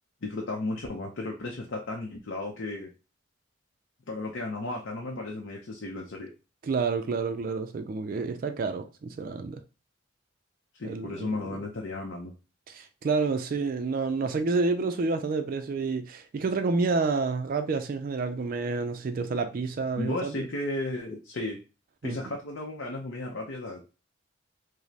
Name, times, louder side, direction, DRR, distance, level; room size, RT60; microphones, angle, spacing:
voice 1, 0.2-2.9 4.1-6.3 10.7-12.3 20.0-21.6 22.0-23.8, left 2 dB, 65° left, 0.6 m, -34 dB
voice 2, 6.6-9.6 10.8-11.6 12.7-20.5 22.0-22.2, right 4 dB, 45° right, 0.3 m, -29 dB
4.9 x 2.0 x 2.8 m
head